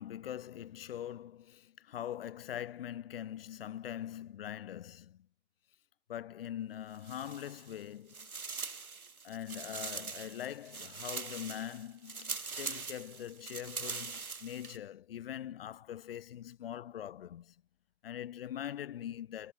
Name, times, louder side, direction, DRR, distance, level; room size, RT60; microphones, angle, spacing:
voice 1, 0.0-5.3 6.1-8.3 9.2-17.5 18.0-19.5, left 11 dB, 40° left, 6.7 m, -43 dB
sound 1, 6.9-7.8 8.1-14.8, right 4 dB, 85° right, 1.6 m, -42 dB
figure-of-eight pair, 140°, 42 cm